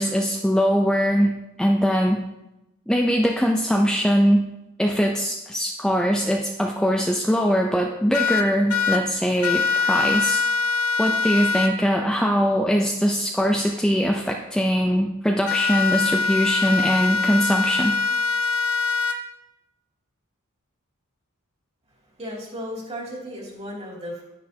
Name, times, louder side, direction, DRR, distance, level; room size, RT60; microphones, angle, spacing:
voice 1, 0.0-1.3 1.6-2.2 2.9-4.5 4.8-10.4 11.0-18.0, equal, 5° left, 0 dB, 0.5 m, -21 dB
sound 1, 8.1-9.0 9.4-11.7 15.5-19.1, left 5 dB, 70° left, 0.9 m, -23 dB
voice 2, 22.0-24.2, equal, 30° right, -3 dB, 2.7 m, -35 dB
9.9 x 9.5 x 2.8 m, 0.94 s
head